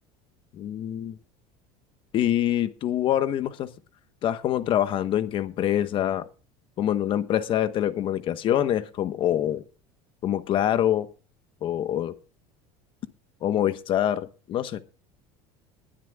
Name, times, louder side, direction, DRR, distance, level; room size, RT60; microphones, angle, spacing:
voice 1, 0.5-1.2 2.1-3.7 4.2-6.3 6.8-9.6 10.2-11.1 11.6-12.1 13.4-14.8, left 11 dB, 40° left, 12 dB, 1.2 m, -25 dB
20.5 x 11.5 x 2.4 m, 0.35 s
cardioid pair, 155°, 14 cm